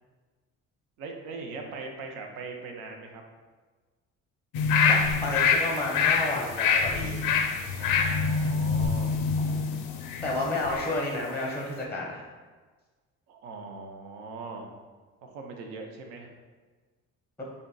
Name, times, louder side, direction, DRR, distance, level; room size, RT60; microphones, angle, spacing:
voice 1, 1.0-3.2 7.8-9.2 10.4-10.5 13.3-14.8 15.2-16.3, right 3 dB, 70° right, 2 dB, 0.6 m, -40 dB
sound 1, 4.5-11.0 11.4-11.5, left 5 dB, 55° left, 0.4 m, -26 dB
voice 2, 4.9-7.3 10.2-12.3 17.4-17.5, left 2 dB, 5° left, -2 dB, 0.5 m, -31 dB
3.5 x 2.6 x 2.3 m, 1.4 s
hypercardioid pair, 60°, 38 cm